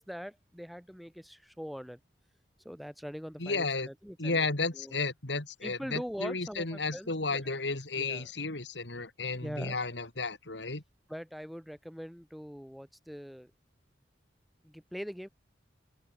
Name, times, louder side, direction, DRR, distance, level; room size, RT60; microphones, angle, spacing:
voice 1, 0.0-2.0 2.6-4.5 4.7-5.0 5.6-7.4 8.0-8.3 9.4-9.8 11.1-13.5 14.6-15.3, equal, ahead, 5.8 m, -42 dB
voice 2, 3.4-3.9 4.2-10.8, left 3 dB, 75° left, 2.9 m, -33 dB
open air
head